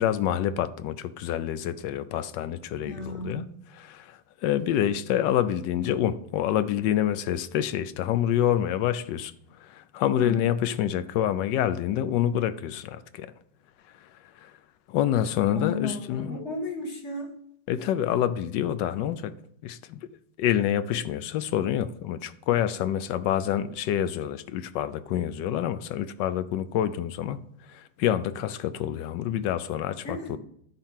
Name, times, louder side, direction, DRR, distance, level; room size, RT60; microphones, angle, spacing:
voice 1, 0.0-3.4 3.7-9.3 9.7-13.3 14.4-14.5 14.9-16.4 17.7-19.3 19.6-20.1 20.4-27.4 27.7-30.4, left 11 dB, 85° left, 1.3 m, -27 dB
voice 2, 2.8-3.5 10.1-10.5 15.5-17.3 30.0-30.4, left 3 dB, 40° left, 1.8 m, -34 dB
11.0 x 4.0 x 7.3 m
omnidirectional pair, 1.9 m